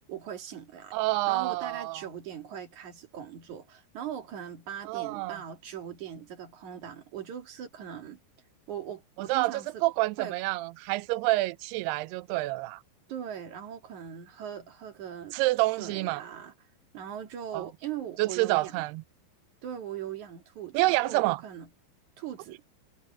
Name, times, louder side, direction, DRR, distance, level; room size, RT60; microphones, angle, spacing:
voice 1, 0.1-0.9 1.3-8.2 8.7-9.7 10.2-10.4 13.1-15.4 15.8-16.5 16.9-18.8 19.6-21.7 22.2-22.6, right 9 dB, 50° right, 3.0 m, -40 dB
voice 2, 0.9-2.0 4.9-5.4 9.3-12.8 15.3-16.2 17.5-17.6 18.2-19.0 20.7-21.4, right 20 dB, 80° right, 2.4 m, -28 dB
omnidirectional pair, 5.2 m